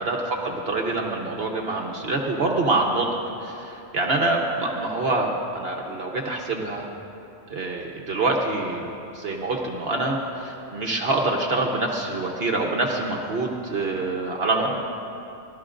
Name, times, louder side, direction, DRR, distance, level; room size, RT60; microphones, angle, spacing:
voice 1, 0.0-3.1 3.4-6.9 7.5-8.8 9.1-14.9, right 2 dB, 65° right, 0 dB, 1.2 m, -25 dB
29.5 x 12.5 x 2.6 m, 2.9 s
omnidirectional pair, 1.1 m